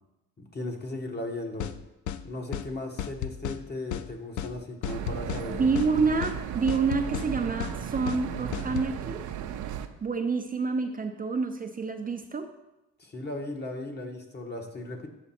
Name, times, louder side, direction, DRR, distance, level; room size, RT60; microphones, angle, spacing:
voice 1, 0.4-1.7 2.2-5.6 13.0-15.1, left 2 dB, 35° left, 2 dB, 1.4 m, -36 dB
sound 1, 1.6-1.8 2.1-2.2 2.5-2.7 3.0-3.6 3.9-4.1 4.4-4.5 4.8-5.5 5.8-5.9 6.2-6.4 6.7-7.3 7.6-7.8 8.1-8.2 8.5-8.9, left 10 dB, 70° left, 0.5 m, -33 dB
sound 2, 4.9-9.9, right 9 dB, 75° right, 0.6 m, -35 dB
voice 2, 5.5-9.2 10.0-12.5, right 4 dB, 30° right, 5 dB, 0.6 m, -28 dB
8.2 x 6.7 x 4.3 m, 0.95 s
cardioid pair, 90°, 30 cm